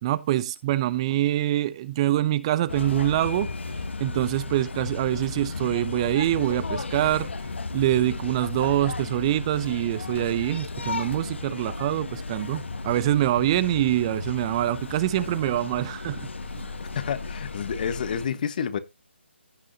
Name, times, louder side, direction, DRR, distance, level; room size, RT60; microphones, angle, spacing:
voice 1, 0.0-3.5 4.0-7.3 7.7-16.3 16.6-16.7, right 14 dB, 30° right, 0.7 m, -25 dB
sound 1, 2.7-18.3, left 3 dB, 70° left, 1.4 m, -34 dB
voice 2, 16.8-18.8, left 7 dB, 45° left, 1.5 m, -29 dB
16.0 x 6.3 x 2.9 m
figure-of-eight pair, 145°, 7 cm